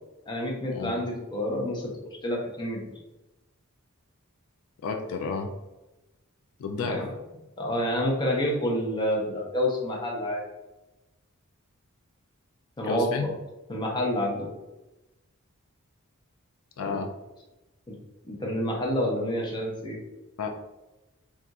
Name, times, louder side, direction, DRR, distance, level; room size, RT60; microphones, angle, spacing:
voice 1, 0.3-3.0 6.9-7.1 7.6-10.4 12.8-13.1 13.7-14.5 16.8-17.0 17.9-18.0 18.2-20.0, left 1 dB, 20° left, -2 dB, 0.6 m, -28 dB
voice 2, 4.8-5.5 6.6-7.0 12.8-13.3 16.8-17.1 20.4-20.5, left 4 dB, 70° left, 4 dB, 0.3 m, -31 dB
2.4 x 2.3 x 3.9 m, 1.0 s
head